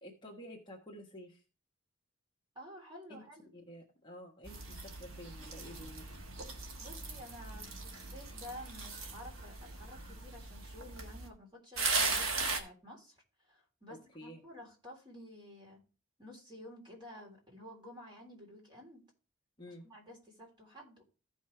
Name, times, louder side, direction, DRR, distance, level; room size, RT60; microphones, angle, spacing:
voice 1, 0.0-1.4 3.1-3.2 3.5-6.0 14.1-14.4 19.6-19.9, equal, 25° left, -1 dB, 1.3 m, -50 dB
voice 2, 2.5-3.5 6.8-13.1 13.4-15.8 16.2-19.0 19.7-21.0, left 1 dB, 25° right, -1 dB, 3.4 m, -51 dB
sound 1, 4.4-11.3 11.8-12.6, right 4 dB, 70° right, 1.5 m, -38 dB
15.0 x 5.5 x 3.2 m, 0.34 s
head